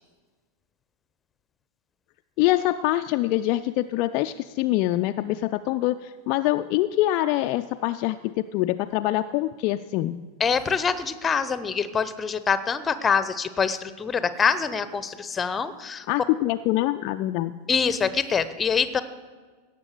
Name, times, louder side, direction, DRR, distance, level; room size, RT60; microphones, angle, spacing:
voice 1, 2.4-10.2 16.1-17.6, left 15 dB, 45° left, 8 dB, 0.3 m, -25 dB
voice 2, 10.4-16.1 17.7-19.0, left 6 dB, 20° left, 14 dB, 0.7 m, -25 dB
17.0 x 6.7 x 6.6 m, 1.4 s
figure-of-eight pair, 90°, 0 cm